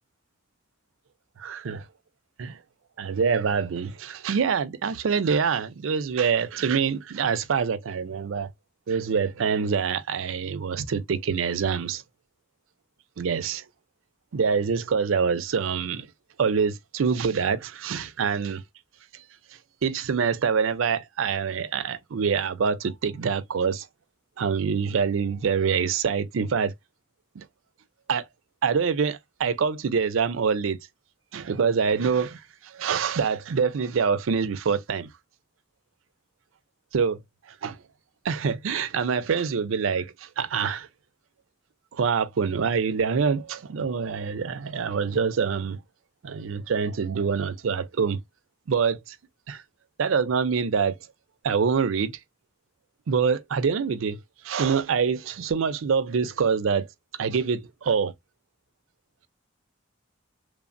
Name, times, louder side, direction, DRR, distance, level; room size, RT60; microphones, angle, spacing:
voice 1, 3.0-8.5 8.9-12.0 13.2-13.6 14.3-16.1 16.4-18.6 19.8-23.9 24.4-26.7 27.4-27.5 28.1-28.3 28.6-30.8 31.3-35.1 36.9-37.2 37.6-37.8 38.2-40.9 41.9-45.8 46.2-48.2 48.7-49.2 49.5-49.6 50.0-51.0 51.4-52.1 53.1-54.2 54.4-56.9 57.2-58.1, right 6 dB, 90° right, 0.5 m, -25 dB
3.2 x 2.0 x 2.5 m
head